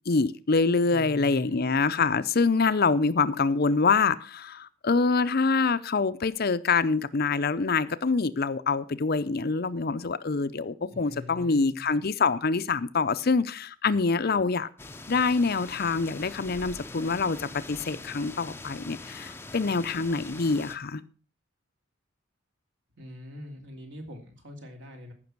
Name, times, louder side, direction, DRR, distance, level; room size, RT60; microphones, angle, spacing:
voice 1, 0.1-14.7 15.1-21.0, left 4 dB, 50° left, 13 dB, 0.6 m, -25 dB
voice 2, 0.8-1.7 10.9-11.8 23.0-25.1, left 1 dB, 60° right, 2 dB, 3.2 m, -43 dB
sound 1, 14.8-20.8, left 2 dB, 10° left, 0.7 m, -43 dB
14.5 x 6.1 x 6.0 m, 0.38 s
head